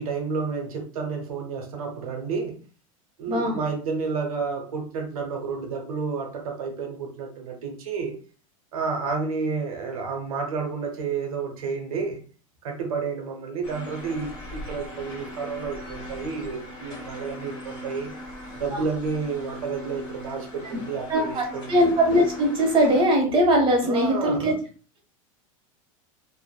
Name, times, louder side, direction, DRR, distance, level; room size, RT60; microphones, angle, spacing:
voice 1, 0.0-2.6 3.2-8.1 8.7-12.2 12.6-18.1 18.5-21.8 23.8-24.5, right 5 dB, 90° right, 0.7 m, -30 dB
sound 1, 13.6-23.0, left 1 dB, 25° left, 1.4 m, -39 dB
voice 2, 21.1-24.5, equal, 30° right, 1.1 m, -21 dB
2.5 x 2.5 x 2.3 m
supercardioid pair, 115°, 18 cm